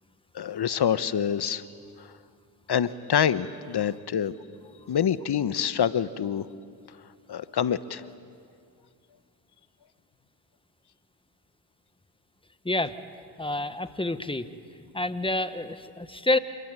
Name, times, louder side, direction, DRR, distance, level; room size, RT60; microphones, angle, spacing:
voice 1, 0.3-1.6 2.0-2.2 2.7-4.4 4.9-6.5 7.3-8.0, left 8 dB, 55° left, 14 dB, 1.2 m, -26 dB
voice 2, 13.4-14.5 14.9-16.4, left 2 dB, 10° left, 11 dB, 1.5 m, -28 dB
27.0 x 21.5 x 9.7 m, 2.2 s
supercardioid pair, 50°, 48 cm